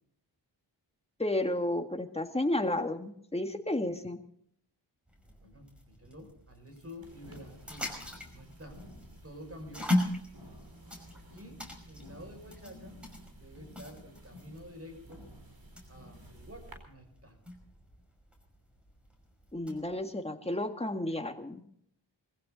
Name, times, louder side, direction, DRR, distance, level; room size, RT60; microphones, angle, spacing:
voice 1, 1.2-4.2 19.5-21.7, left 1 dB, 15° left, 6 dB, 1.8 m, -32 dB
sound 1, 5.1-19.9, left 1 dB, ahead, 5.4 m, -40 dB
voice 2, 5.4-7.9 8.3-8.9 9.2-9.9 11.1-13.0 13.3-15.3 15.9-17.4, equal, 30° right, 5 dB, 6.2 m, -49 dB
sound 2, 7.0-16.8, equal, 50° right, 4.3 m, -52 dB
21.5 x 15.5 x 4.0 m, 0.68 s
cardioid pair, 55°, 46 cm